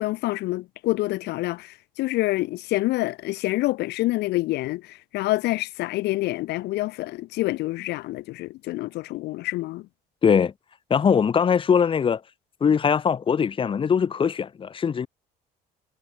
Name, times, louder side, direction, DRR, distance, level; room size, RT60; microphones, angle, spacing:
voice 1, 0.0-9.9, left 18 dB, 80° left, 0.6 m, -27 dB
voice 2, 10.2-10.5 10.9-12.2 12.6-15.1, left 7 dB, 30° left, 0.8 m, -21 dB
cardioid pair, 110°, 17 cm